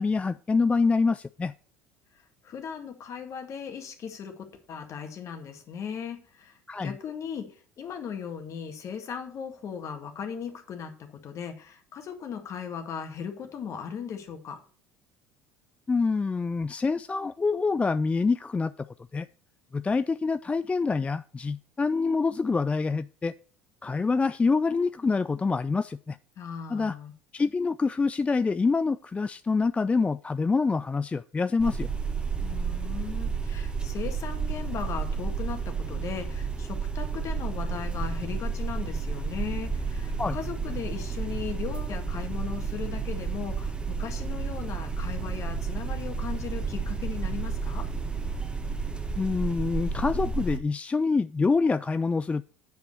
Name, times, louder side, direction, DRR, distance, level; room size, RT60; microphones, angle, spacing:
voice 1, 0.0-1.5 6.7-6.9 15.9-18.9 19.1-19.3 19.7-23.3 23.8-26.2 26.7-27.0 27.3-31.9 40.2-40.4 49.2-52.4, left 4 dB, 20° left, 0.3 m, -26 dB
voice 2, 2.4-14.6 26.4-27.1 32.4-47.9, left 7 dB, 45° left, 1.9 m, -37 dB
sound 1, 31.6-50.6, right 5 dB, 15° right, 1.5 m, -31 dB
8.9 x 5.3 x 6.5 m
hypercardioid pair, 65°, 7 cm